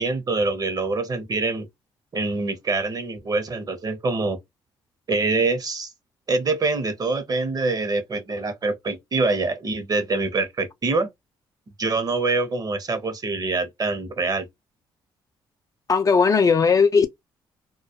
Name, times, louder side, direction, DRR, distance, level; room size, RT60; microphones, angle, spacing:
voice 1, 0.0-1.7 2.1-4.4 5.1-5.9 6.3-11.1 11.8-14.5, right 3 dB, 40° right, 0.8 m, -25 dB
voice 2, 15.9-17.1, left 5 dB, 35° left, 0.4 m, -17 dB
2.3 x 2.1 x 2.7 m
supercardioid pair, 60°, 10 cm